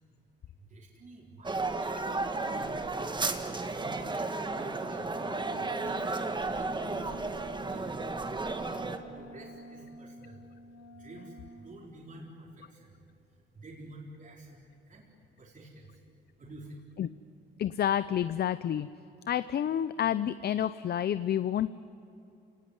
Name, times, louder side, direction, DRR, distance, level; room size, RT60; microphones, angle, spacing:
voice 1, 0.6-3.0 3.4-5.2 5.6-7.2 7.7-8.3 9.1-10.5 10.9-13.0 13.5-15.1 15.4-16.0 16.4-16.8, right 2 dB, 40° right, -3 dB, 4.3 m, -50 dB
sound 1, 1.4-9.0, right 3 dB, 25° right, 1.9 m, -33 dB
Wind instrument woodwind instrument, 4.9-11.7, equal, 80° left, 3.0 m, -49 dB
voice 2, 17.6-18.9 19.3-21.7, left 10 dB, 55° left, 15 dB, 0.6 m, -29 dB
28.5 x 18.5 x 9.8 m, 2.8 s
cardioid pair, 90°, 20 cm